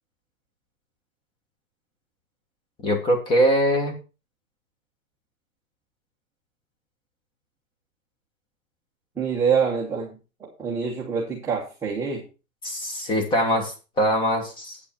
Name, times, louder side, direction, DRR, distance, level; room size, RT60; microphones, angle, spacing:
voice 1, 2.8-3.9 12.6-14.8, equal, 10° left, 6 dB, 1.5 m, -22 dB
voice 2, 9.2-12.2, right 6 dB, 5° right, -4 dB, 1.0 m, -26 dB
8.7 x 8.3 x 4.4 m, 0.31 s
hypercardioid pair, 170°, 41 cm